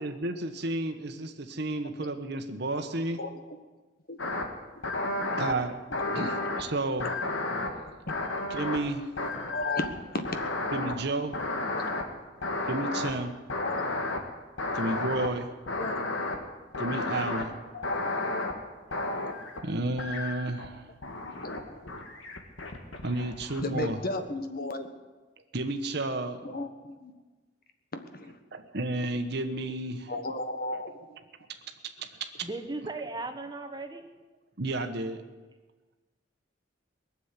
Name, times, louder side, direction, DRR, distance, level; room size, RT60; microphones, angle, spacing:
voice 1, 0.0-3.2 5.3-5.7 6.1-6.3 6.6-7.1 8.5-9.1 10.7-11.3 12.7-13.3 14.7-15.5 16.8-17.5 19.2-19.3 19.6-20.9 23.0-24.0 25.5-26.6 28.5-30.1 30.7-30.8 32.0-32.1 32.4-32.5 34.6-35.2, right 2 dB, 60° right, 6 dB, 1.2 m, -31 dB
sound 1, 4.2-4.5 4.8-5.5 5.9-6.6 7.0-8.9 9.2-10.0 10.3-11.0 11.3-12.0 12.4-13.1 13.5-14.2 14.6-15.3 15.7-16.4 16.7-17.5 17.8-18.5 18.9-19.6 20.0-20.7 21.0-21.6 21.9-23.9, left 2 dB, 85° left, 1.9 m, -32 dB
voice 2, 5.9-6.4 8.1-8.2 9.5-10.2 11.6-11.9 12.2-12.3 13.6-13.8 15.7-16.5 17.7-18.5 21.2-22.0 23.6-24.9 26.4-27.1 27.9-28.4 30.1-31.2, left 2 dB, 50° left, 8 dB, 1.3 m, -36 dB
voice 3, 32.4-34.1, right 2 dB, 20° right, 7 dB, 1.1 m, -37 dB
19.5 x 7.4 x 9.8 m, 1.3 s
head